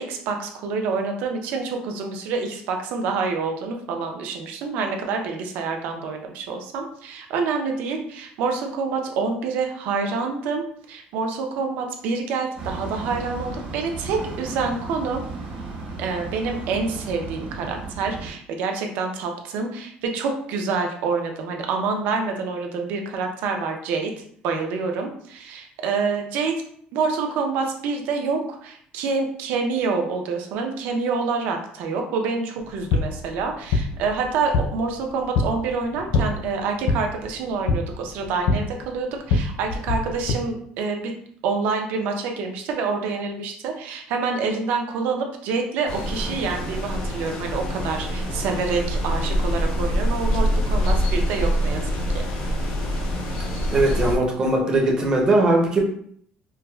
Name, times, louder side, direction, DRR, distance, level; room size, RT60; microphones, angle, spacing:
voice 1, 0.0-15.2 16.0-24.1 24.4-26.5 26.9-41.1 41.4-52.3, right 4 dB, 65° right, 3 dB, 0.5 m, -27 dB
sound 1, 12.6-18.3, right 3 dB, 85° right, 1.3 m, -35 dB
sound 2, 32.6-40.3, left 3 dB, 70° left, 0.4 m, -26 dB
sound 3, 45.9-54.2, equal, 85° left, 0.8 m, -25 dB
voice 2, 53.7-55.8, right 2 dB, 25° right, 0 dB, 0.5 m, -19 dB
4.5 x 2.0 x 2.2 m, 0.64 s
cardioid pair, 170°, 3 cm